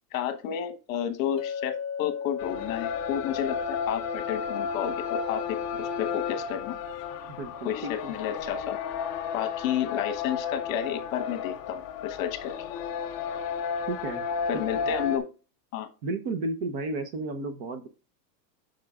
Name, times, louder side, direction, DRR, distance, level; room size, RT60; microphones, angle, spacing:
voice 1, 0.1-6.8 7.6-8.8 9.3-12.5 14.5-15.2 15.7-15.9, left 10 dB, 55° left, 9 dB, 1.3 m, -31 dB
Chink clink, 1.4-5.6, left 7 dB, 35° left, 1.5 m, -38 dB
sound 1, 2.4-15.2, left 6 dB, 20° left, 0.5 m, -33 dB
voice 2, 7.3-8.1 13.9-14.2 14.5-15.0 16.0-17.9, right 2 dB, 35° right, 9 dB, 0.8 m, -33 dB
8.9 x 6.4 x 2.4 m, 0.32 s
supercardioid pair, 170°, 49 cm